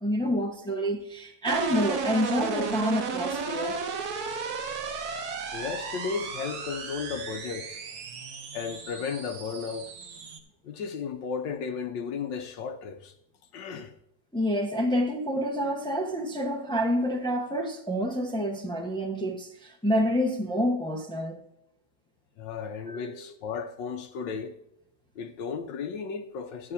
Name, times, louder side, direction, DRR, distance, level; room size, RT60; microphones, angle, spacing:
voice 1, 0.0-3.8 14.3-21.4 22.9-23.2, equal, 5° left, 0.6 m, -28 dB
sound 1, 1.5-10.4, right 4 dB, 60° right, 1.3 m, -34 dB
voice 2, 5.5-7.8 8.5-9.9 10.6-13.1 13.5-13.9 22.4-24.6 25.1-26.7, left 6 dB, 75° left, 1.4 m, -34 dB
12.5 x 9.1 x 2.7 m
omnidirectional pair, 2.1 m